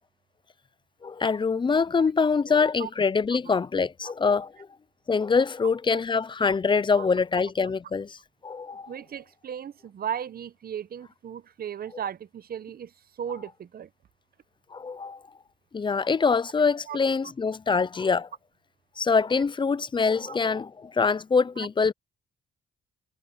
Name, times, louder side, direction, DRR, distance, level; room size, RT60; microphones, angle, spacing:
voice 1, 1.0-4.5 5.1-8.2 8.4-8.9 14.7-15.2 15.7-18.3 19.0-21.9, left 5 dB, 25° left, 0.5 m, -24 dB
voice 2, 8.9-12.9 13.2-13.9 16.9-17.0 20.2-20.4 21.6-21.7, right 9 dB, 50° right, 0.9 m, -36 dB
cardioid pair, 90°, 20 cm